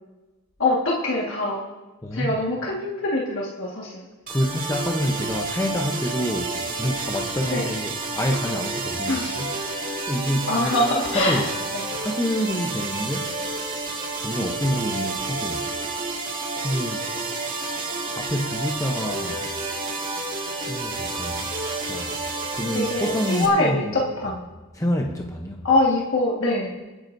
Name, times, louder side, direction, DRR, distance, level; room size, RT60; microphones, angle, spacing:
voice 1, 0.6-1.6 2.1-4.0 7.5-7.7 9.1-9.5 10.5-11.5 11.7-11.9 22.7-24.4 25.6-26.7, left 2 dB, 60° left, -4 dB, 1.7 m, -24 dB
voice 2, 2.0-2.4 4.3-10.8 11.1-11.5 11.9-13.3 14.2-15.7 16.1-16.2 16.6-17.1 18.2-19.5 20.7-21.5 21.8-22.2 22.5-24.0 24.7-25.6, equal, 15° left, 1 dB, 0.7 m, -27 dB
sound 1, 4.3-23.5, right 3 dB, 40° right, 2.1 m, -30 dB
27.5 x 9.7 x 2.7 m, 1.2 s
head